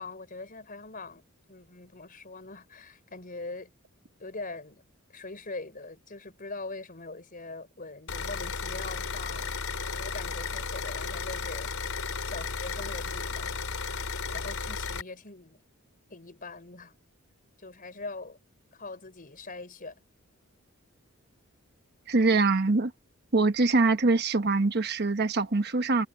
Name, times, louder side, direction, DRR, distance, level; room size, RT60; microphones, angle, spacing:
voice 1, 0.0-3.7 4.2-4.8 5.1-9.6 9.8-11.7 12.2-15.6 16.1-16.9 17.6-18.4 18.7-20.0, left 3 dB, 40° left, 4.8 m, -42 dB
sound 1, 8.1-15.0, left 4 dB, 80° left, 3.8 m, -34 dB
voice 2, 22.1-22.9 23.3-26.1, right 3 dB, 50° right, 1.1 m, -23 dB
head